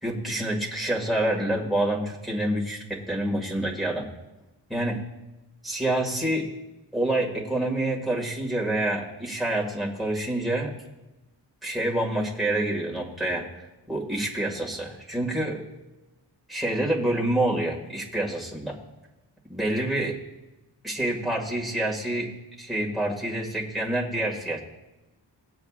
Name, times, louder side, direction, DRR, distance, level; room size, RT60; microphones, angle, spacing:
voice 1, 0.0-4.1 4.7-5.0 5.6-6.5 6.9-10.7 11.6-13.5 13.9-15.6 16.5-18.8 19.5-20.2 20.8-22.3 22.6-24.6, right 1 dB, ahead, -3 dB, 1.9 m, -27 dB
19.5 x 7.7 x 2.4 m, 1.0 s
wide cardioid pair, 180°, 43 cm